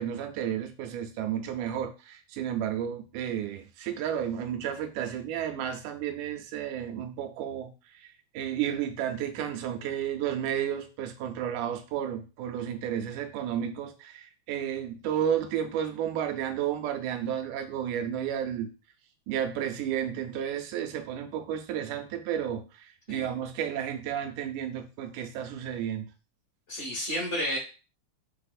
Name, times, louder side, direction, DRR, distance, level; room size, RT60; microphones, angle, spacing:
voice 1, 0.0-7.7 8.0-8.1 8.3-18.7 19.3-26.1, right 9 dB, 90° right, 5 dB, 2.2 m, -32 dB
voice 2, 26.7-27.6, equal, 35° left, -5 dB, 1.3 m, -31 dB
5.9 x 3.4 x 2.4 m, 0.33 s
omnidirectional pair, 3.5 m